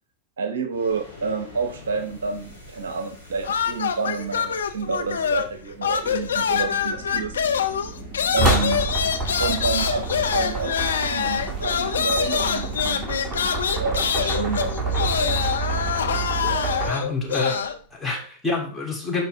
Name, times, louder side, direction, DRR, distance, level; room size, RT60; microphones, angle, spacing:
voice 1, 0.4-7.4 8.3-8.9 9.4-13.5 13.8-15.3, right 4 dB, 65° right, 8 dB, 1.0 m, -29 dB
sound 1, 0.7-18.1, left 1 dB, 85° left, 2.8 m, -45 dB
sound 2, 3.4-5.6 5.8-17.8, left 7 dB, 65° left, 0.8 m, -25 dB
sound 3, 5.9-16.9, right 3 dB, 15° right, 1.9 m, -29 dB
voice 2, 16.8-19.2, left 3 dB, 5° left, -3 dB, 3.2 m, -27 dB
11.5 x 4.6 x 3.6 m, 0.40 s
figure-of-eight pair, 90°, 0 cm